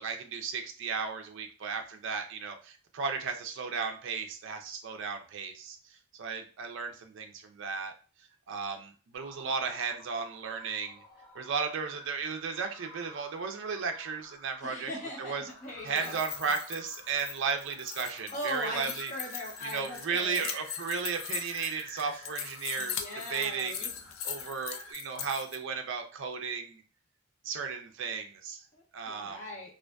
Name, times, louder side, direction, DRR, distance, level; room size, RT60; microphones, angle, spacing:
voice 1, 0.0-7.9 8.5-11.0 11.3-14.9 15.2-15.4 15.8-19.1 19.6-23.0 23.3-23.9 24.2-26.8 27.4-28.6 28.9-29.5, right 5 dB, 60° right, 5 dB, 0.4 m, -35 dB
sound 1, 9.1-24.9, equal, 15° left, 1.0 m, -52 dB
voice 2, 14.6-16.2 18.3-20.5 22.8-23.9 28.7-29.7, equal, 35° left, -3 dB, 0.9 m, -40 dB
sound 2, 15.8-25.6, left 8 dB, 70° left, 0.3 m, -40 dB
2.5 x 2.4 x 2.2 m, 0.38 s
head